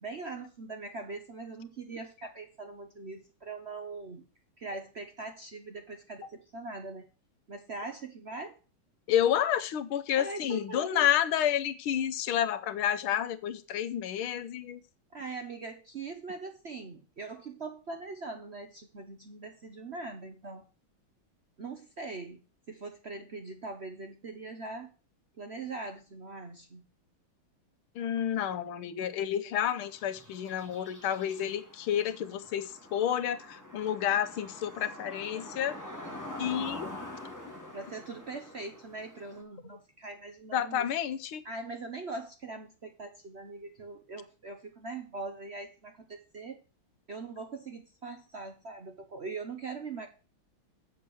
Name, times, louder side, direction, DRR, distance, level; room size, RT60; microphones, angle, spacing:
voice 1, 0.0-4.2 4.6-7.1 7.5-8.6 10.2-11.1 15.1-20.6 21.6-22.4 22.7-24.9 25.4-26.9 37.7-40.9 41.4-46.6 47.1-50.1, right 3 dB, 50° right, 5 dB, 0.8 m, -41 dB
voice 2, 9.1-14.8 27.9-35.7 36.4-36.9 40.5-41.4, left 10 dB, 85° left, 11 dB, 1.7 m, -30 dB
sound 1, 29.7-39.4, left 1 dB, 10° left, 2.3 m, -45 dB
7.8 x 6.4 x 6.9 m, 0.35 s
omnidirectional pair, 2.2 m